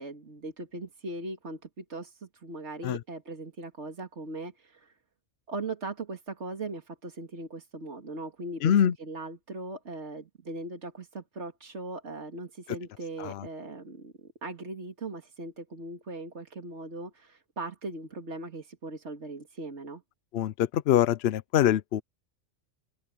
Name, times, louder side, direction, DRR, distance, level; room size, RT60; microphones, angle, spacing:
voice 1, 0.0-4.9 5.5-20.0, right 2 dB, 75° right, 2.7 m, -39 dB
voice 2, 8.6-8.9 13.2-13.4 20.3-22.0, left 10 dB, 65° left, 0.8 m, -24 dB
open air
omnidirectional pair, 1.2 m